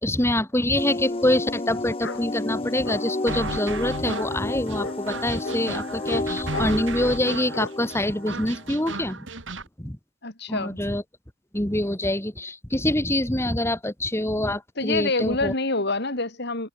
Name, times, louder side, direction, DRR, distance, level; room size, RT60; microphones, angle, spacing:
voice 1, 0.0-9.2 9.8-10.0 10.5-11.0 11.5-15.5, left 1 dB, 15° left, 2.2 m, -25 dB
sound 1, 0.8-9.1, left 2 dB, 30° left, 1.0 m, -32 dB
Bark, 2.0-2.2 2.8-3.4 4.1-4.3 4.8-5.0 5.4-5.6 6.1-6.2 6.5-7.2 7.5-7.7, left 3 dB, 75° left, 3.3 m, -34 dB
sound 2, 3.3-9.7, right 3 dB, 75° right, 3.3 m, -35 dB
voice 2, 10.2-10.8 14.8-16.7, left 2 dB, 60° left, 4.9 m, -26 dB
head